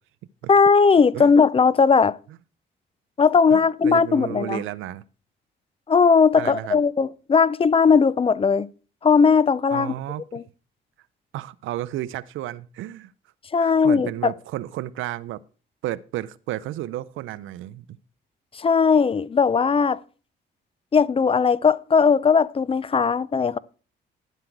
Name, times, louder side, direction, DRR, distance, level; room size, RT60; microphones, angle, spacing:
voice 1, 0.5-2.2 3.2-4.6 5.9-8.7 9.0-9.9 10.3-10.4 13.5-14.3 18.6-20.0 20.9-23.6, left 5 dB, 30° left, 0.4 m, -18 dB
voice 2, 3.5-5.0 6.4-6.8 9.7-10.4 11.3-13.1 13.6-15.4 15.8-18.0, right 14 dB, 85° right, 0.5 m, -32 dB
11.0 x 7.7 x 4.6 m
cardioid pair, 90°, 20 cm